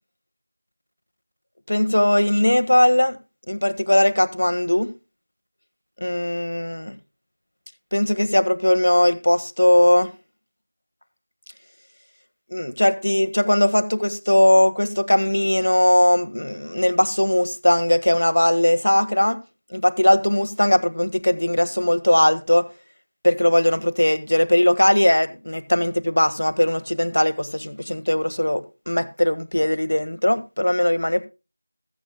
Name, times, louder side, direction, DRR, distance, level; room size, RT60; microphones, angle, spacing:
voice 1, 1.7-3.2 3.5-4.9 6.0-7.0 7.9-10.1 12.5-19.4 19.7-22.7 23.2-31.3, left 1 dB, 85° left, 1.6 m, -19 dB
21.5 x 8.6 x 2.3 m
figure-of-eight pair, 180°, 0 cm